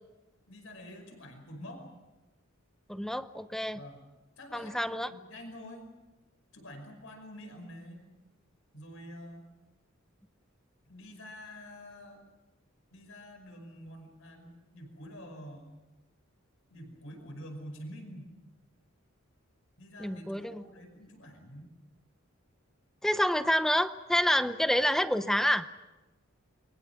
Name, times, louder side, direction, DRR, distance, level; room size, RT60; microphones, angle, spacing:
voice 1, 0.5-1.9 3.7-4.1 4.4-5.9 6.5-8.0 8.7-9.5 10.9-12.2 12.9-15.8 16.7-18.3 19.8-21.7, equal, 70° left, 5 dB, 5.4 m, -47 dB
voice 2, 2.9-3.8 4.5-5.1 20.0-20.6 23.0-25.7, equal, ahead, 11 dB, 0.8 m, -28 dB
29.5 x 23.0 x 6.0 m, 1.1 s
head